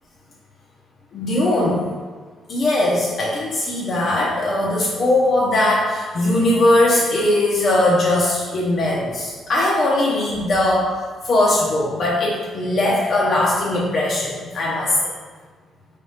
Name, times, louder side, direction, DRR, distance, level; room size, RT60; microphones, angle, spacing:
voice 1, 1.1-1.8 2.5-10.9 11.2-15.1, left 1 dB, 55° left, -5 dB, 0.7 m, -19 dB
4.5 x 3.4 x 2.8 m, 1.5 s
cardioid pair, 90°, 0 cm